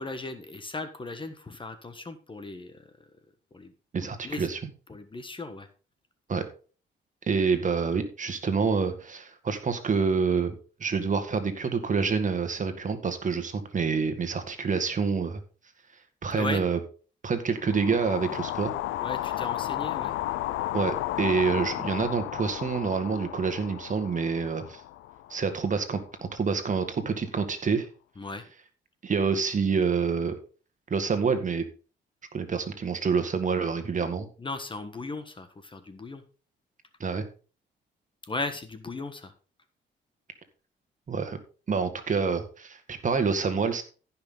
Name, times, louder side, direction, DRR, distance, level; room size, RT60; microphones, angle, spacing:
voice 1, 0.0-2.9 3.5-3.7 4.0-4.5 4.9-5.7 6.3-6.4 16.3-16.6 19.0-20.1 28.1-28.5 34.4-36.2 38.3-39.3, left 3 dB, 25° left, 9 dB, 1.3 m, -37 dB
voice 2, 3.9-4.6 6.3-6.4 7.3-15.4 16.2-16.8 17.2-18.7 20.7-24.8 25.3-26.0 26.3-27.9 29.0-30.3 30.9-31.7 32.3-34.3 37.0-37.2 41.1-41.4 41.7-43.8, right 5 dB, 40° right, 8 dB, 1.9 m, -27 dB
sound 1, 17.6-25.8, left 15 dB, 90° left, 0.5 m, -33 dB
15.0 x 5.9 x 3.8 m, 0.37 s
cardioid pair, 90°, 20 cm